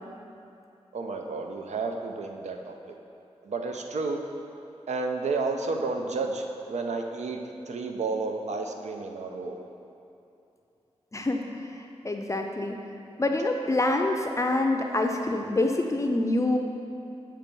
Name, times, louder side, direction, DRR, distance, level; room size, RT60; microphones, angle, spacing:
voice 1, 0.9-3.0 3.4-4.2 4.9-7.4 7.7-9.6, right 3 dB, 85° right, 3 dB, 0.6 m, -31 dB
voice 2, 11.1-12.7 13.2-16.6, left 2 dB, 25° left, 3 dB, 0.4 m, -26 dB
7.4 x 4.5 x 5.3 m, 2.7 s
wide cardioid pair, 85°, 11 cm